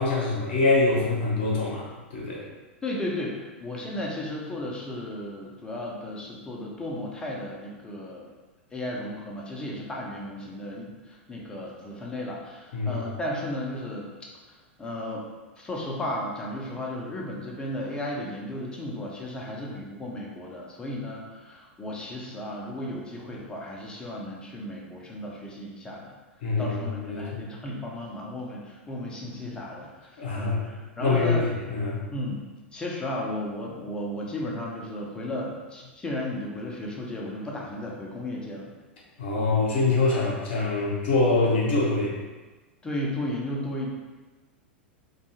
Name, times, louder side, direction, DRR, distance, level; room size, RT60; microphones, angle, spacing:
voice 1, 0.0-2.5 12.7-13.0 26.4-27.4 30.2-30.6 31.0-32.0 39.2-42.1, left 3 dB, 55° left, -5 dB, 0.8 m, -24 dB
voice 2, 2.8-8.3 8.7-14.1 14.5-15.3 15.6-26.1 26.6-31.5 32.1-32.4 32.7-38.7 42.8-43.9, left 1 dB, 15° left, -3 dB, 0.6 m, -34 dB
2.7 x 2.3 x 2.8 m, 1.3 s
figure-of-eight pair, 90°, 6 cm